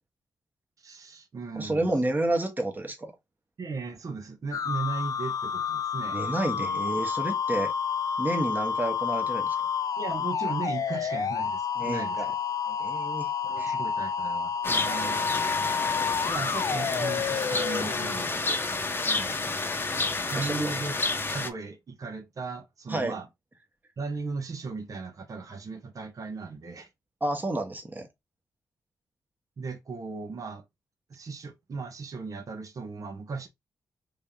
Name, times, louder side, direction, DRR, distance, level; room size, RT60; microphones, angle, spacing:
voice 1, 0.8-1.9 3.6-6.2 6.6-6.7 10.0-12.2 12.7-12.8 13.4-15.2 16.3-18.4 19.0-19.5 20.3-20.9 21.3-23.3 24.0-26.9 29.6-30.6 31.1-33.5, right 4 dB, 55° right, 0.9 m, -37 dB
voice 2, 1.6-3.1 6.1-7.7 8.2-9.5 11.8-12.3 12.8-13.3 13.6-13.8 20.4-20.7 22.9-23.1 27.2-28.1, right 1 dB, 25° right, 1.2 m, -30 dB
sound 1, 4.5-18.3, left 6 dB, 55° left, 0.4 m, -30 dB
sound 2, 14.6-21.5, left 3 dB, 30° left, 0.8 m, -30 dB
3.3 x 2.8 x 3.5 m
cardioid pair, 65°, 7 cm